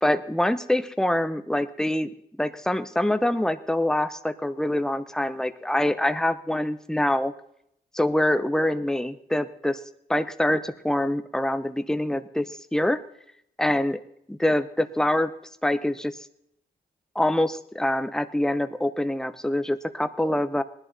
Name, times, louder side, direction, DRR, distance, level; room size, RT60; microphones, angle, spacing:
voice 1, 0.0-2.1 2.4-7.3 7.9-9.8 10.1-13.0 13.6-14.0 14.3-15.3 15.6-16.1 17.1-20.6, left 1 dB, 5° left, 11 dB, 0.8 m, -25 dB
19.5 x 11.0 x 4.1 m, 0.74 s
wide cardioid pair, 100°, 16 cm